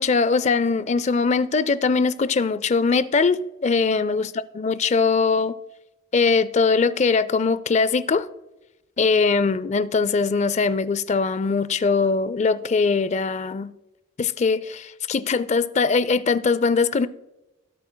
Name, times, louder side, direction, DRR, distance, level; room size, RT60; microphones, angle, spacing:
voice 1, 0.0-4.3 4.5-5.5 6.1-8.3 9.0-13.7 14.2-17.1, left 4 dB, 35° left, 0.4 m, -21 dB
17.5 x 8.3 x 2.2 m
head